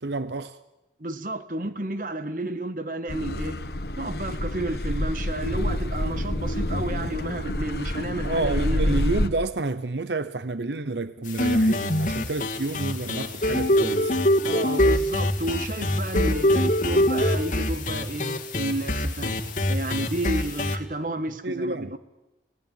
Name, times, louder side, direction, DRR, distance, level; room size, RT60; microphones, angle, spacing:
voice 1, 0.0-0.6 8.2-14.1 21.4-22.0, right 2 dB, 80° right, 0.8 m, -29 dB
voice 2, 1.0-3.6 3.9-9.0 14.5-22.0, right 2 dB, 50° right, 1.5 m, -31 dB
Car passing by / Accelerating revving vroom, 3.1-9.3, left 1 dB, 65° left, 1.5 m, -28 dB
sound 1, 11.3-20.8, left 1 dB, 45° left, 2.1 m, -24 dB
29.5 x 18.0 x 9.4 m
head